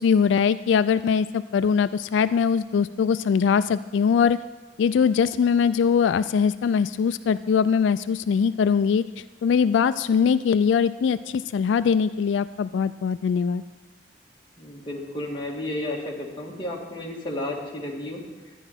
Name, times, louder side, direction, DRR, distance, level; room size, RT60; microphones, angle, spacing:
voice 1, 0.0-4.4 4.8-13.6, left 6 dB, 85° left, 14 dB, 0.3 m, -22 dB
voice 2, 14.6-18.2, left 1 dB, 25° left, -2 dB, 1.9 m, -32 dB
12.5 x 9.9 x 5.8 m, 1.2 s
head